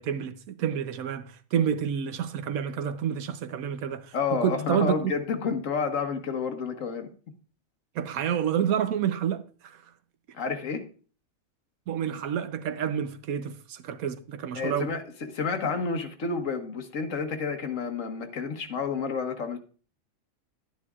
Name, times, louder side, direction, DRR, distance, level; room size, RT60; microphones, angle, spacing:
voice 1, 0.0-5.1 7.9-9.8 11.9-14.9, right 9 dB, 85° right, 1.2 m, -29 dB
voice 2, 4.1-7.1 10.3-10.8 14.5-19.6, left 5 dB, 65° left, 1.5 m, -30 dB
11.5 x 10.5 x 2.4 m
omnidirectional pair, 1.4 m